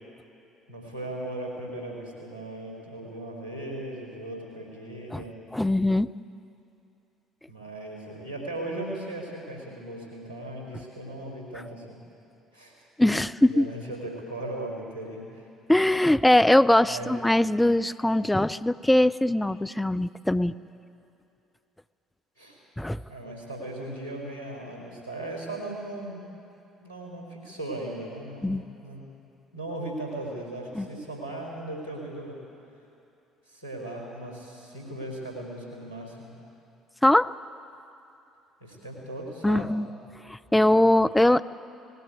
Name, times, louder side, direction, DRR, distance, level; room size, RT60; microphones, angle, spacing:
voice 1, 0.7-5.4 7.5-12.0 12.5-12.7 13.5-15.5 16.8-17.1 22.4-22.6 23.1-26.2 26.8-29.0 29.5-32.4 33.5-36.3 38.6-39.7, right 1 dB, 80° left, -3 dB, 4.5 m, -37 dB
voice 2, 5.5-6.1 13.0-13.7 15.7-20.5 22.8-23.0 28.4-28.7 30.7-30.9 37.0-37.3 39.4-39.9 40.3-41.4, left 1 dB, 10° left, 12 dB, 0.5 m, -21 dB
19.0 x 15.5 x 9.5 m, 2.7 s
figure-of-eight pair, 55°, 0 cm